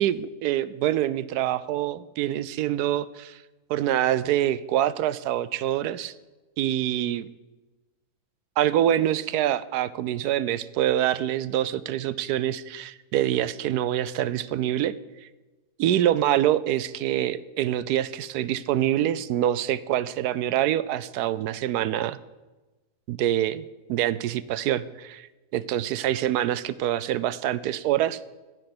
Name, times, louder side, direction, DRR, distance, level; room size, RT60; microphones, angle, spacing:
voice 1, 0.0-3.4 3.7-6.1 6.6-7.3 8.6-14.9 15.8-22.2 23.1-25.3 25.5-28.2, right 12 dB, 80° right, 17 dB, 1.1 m, -25 dB
15.5 x 7.6 x 6.0 m, 1.2 s
omnidirectional pair, 1.7 m